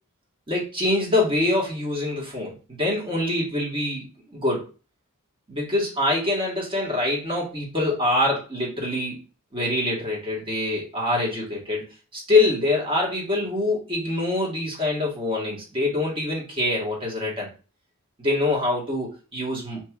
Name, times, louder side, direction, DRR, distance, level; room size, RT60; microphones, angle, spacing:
voice 1, 0.5-4.7 5.5-9.2 9.5-11.8 12.1-17.5 18.2-19.8, left 2 dB, 25° right, -3 dB, 1.5 m, -25 dB
5.2 x 3.0 x 2.4 m, 0.34 s
head